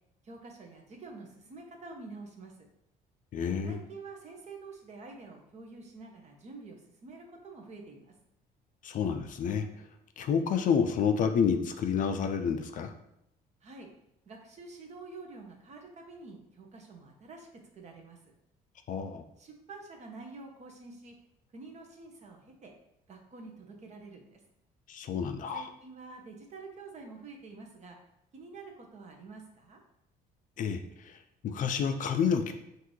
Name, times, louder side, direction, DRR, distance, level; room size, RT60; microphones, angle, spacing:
voice 1, 0.2-2.5 3.6-8.1 13.6-13.9 14.3-18.2 19.4-21.1 21.5-22.7 23.1-24.4 25.5-28.0 28.3-29.8, right 3 dB, 40° right, 2 dB, 0.9 m, -48 dB
voice 2, 3.3-3.8 8.8-9.7 10.2-12.9 18.9-19.2 24.9-25.7 30.6-31.2 31.4-32.5, left 6 dB, 50° left, 7 dB, 0.4 m, -29 dB
5.8 x 2.6 x 3.0 m, 0.79 s
cardioid pair, 110°, 17 cm